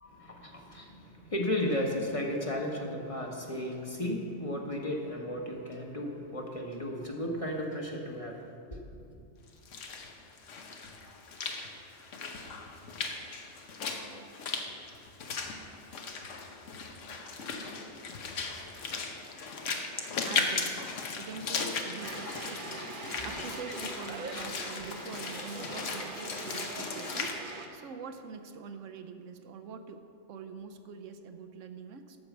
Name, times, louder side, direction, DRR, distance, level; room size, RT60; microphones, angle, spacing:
voice 1, 0.0-9.2 23.1-23.3 24.3-24.5 24.8-24.9, left 1 dB, 30° left, 0 dB, 1.0 m, -35 dB
Walk footsteps / Splash splatter, 9.5-27.3, left 4 dB, 90° left, 1.2 m, -37 dB
voice 2, 20.2-32.2, right 5 dB, 85° right, 8 dB, 1.1 m, -45 dB
sound 1, 22.0-27.7, right 3 dB, 50° right, 0.8 m, -42 dB
13.0 x 4.6 x 7.2 m, 2.5 s
omnidirectional pair, 1.3 m